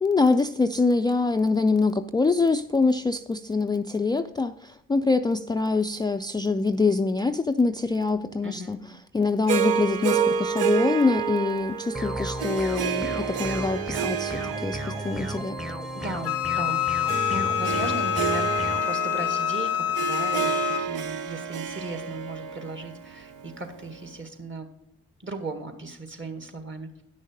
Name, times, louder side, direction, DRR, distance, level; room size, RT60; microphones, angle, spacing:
voice 1, 0.0-8.8 9.1-15.6, left 3 dB, 15° left, 7 dB, 0.4 m, -24 dB
voice 2, 8.4-8.8 15.9-24.7 25.2-27.0, right 1 dB, 40° right, 6 dB, 1.8 m, -37 dB
Harp, 9.5-23.9, right 7 dB, 75° right, 0.6 m, -30 dB
sound 1, 11.9-18.8, equal, ahead, 0.8 m, -34 dB
Wind instrument woodwind instrument, 16.2-20.9, left 13 dB, 90° left, 0.6 m, -26 dB
9.5 x 6.4 x 5.1 m, 0.76 s
hypercardioid pair, 45°, 32 cm